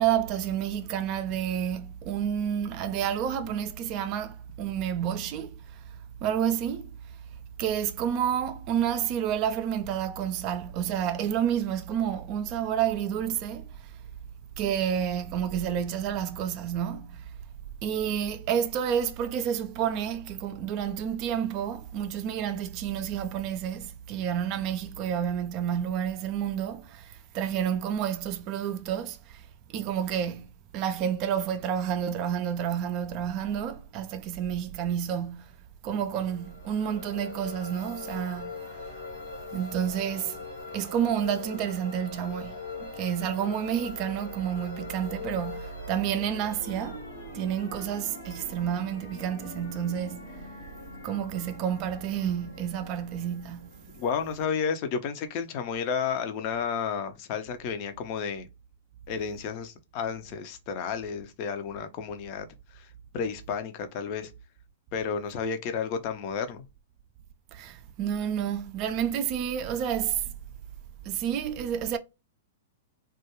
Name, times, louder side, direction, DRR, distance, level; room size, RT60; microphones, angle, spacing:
voice 1, 0.0-5.6 6.2-6.9 7.6-13.7 14.6-17.3 17.8-29.4 29.7-35.5 35.8-38.6 39.5-40.3 40.7-47.0 47.3-50.4 51.0-53.8 67.5-70.2 71.0-72.0, right 9 dB, 40° right, 0.3 m, -30 dB
sound 1, 36.2-54.8, left 3 dB, 90° left, 1.1 m, -42 dB
voice 2, 53.9-58.5 59.1-62.5 62.7-62.9 63.1-64.3 64.9-66.6, left 6 dB, 45° left, 0.5 m, -32 dB
2.3 x 2.2 x 2.9 m
hypercardioid pair, 110°, 0 cm